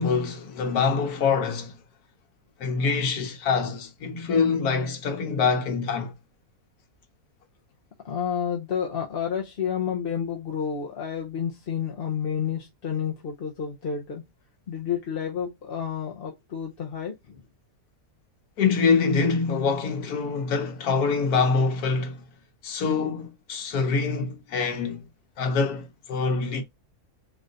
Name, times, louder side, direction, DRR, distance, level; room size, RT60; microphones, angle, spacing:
voice 1, 0.0-1.7 2.6-6.1 18.6-22.2 22.6-25.0 25.4-26.6, left 5 dB, 85° left, 1.5 m, -25 dB
voice 2, 8.0-14.2 14.7-17.4, left 7 dB, 50° left, 0.8 m, -30 dB
3.8 x 3.4 x 3.9 m
omnidirectional pair, 1.6 m